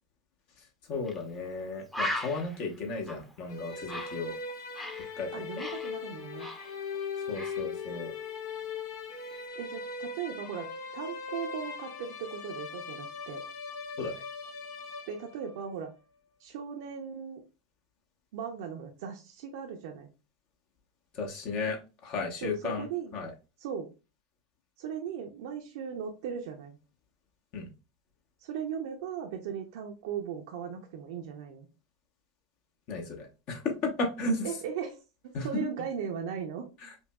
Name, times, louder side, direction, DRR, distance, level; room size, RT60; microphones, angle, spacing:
voice 1, 0.9-4.3 5.2-5.3 7.3-8.1 14.0-14.2 21.1-22.9 23.1-23.3 27.5-27.7 32.9-34.5 35.3-35.6 36.8-36.9, left 3 dB, 50° left, 1 dB, 1.0 m, -34 dB
Bird, 1.1-1.2 1.5-1.6 1.9-5.1 5.4-7.0 7.3-7.6, left 1 dB, 10° left, 0.7 m, -38 dB
sound 1, 3.5-15.6, left 5 dB, 65° left, 0.8 m, -39 dB
voice 2, 5.3-6.5 9.6-13.4 15.1-15.9 16.4-17.4 18.3-20.1 22.4-23.1 23.6-23.9 24.8-26.8 28.4-31.7 34.4-35.0 35.4-36.6, right 7 dB, 65° right, 2 dB, 0.6 m, -38 dB
5.3 x 2.3 x 2.3 m, 0.31 s
hypercardioid pair, 90°, 2 cm